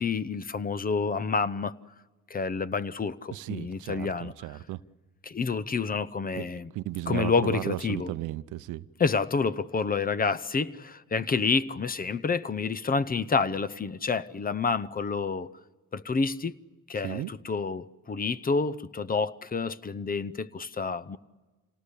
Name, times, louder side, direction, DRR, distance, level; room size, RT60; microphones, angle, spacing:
voice 1, 0.0-1.7 2.3-4.3 5.2-6.7 7.1-8.1 9.0-15.5 15.9-16.5 16.9-21.2, left 4 dB, 30° left, 17 dB, 0.8 m, -28 dB
voice 2, 3.3-4.8 6.3-6.5 6.7-8.8 17.0-17.3, right 15 dB, 85° right, 16 dB, 0.7 m, -35 dB
27.5 x 18.5 x 8.3 m, 1.3 s
cardioid pair, 90°, 30 cm